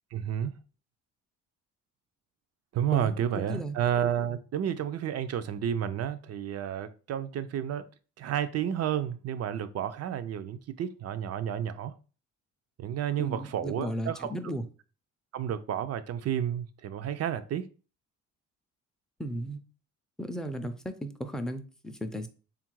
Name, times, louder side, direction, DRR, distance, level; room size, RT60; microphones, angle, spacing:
voice 1, 0.1-0.5 2.7-7.9 8.2-11.9 12.8-14.5 15.3-17.7, right 9 dB, 55° right, 0.5 m, -31 dB
voice 2, 2.9-3.8 13.2-14.6 19.2-19.6 20.2-22.3, equal, ahead, 0.5 m, -35 dB
3.5 x 2.5 x 4.5 m
cardioid pair, 90°, 30 cm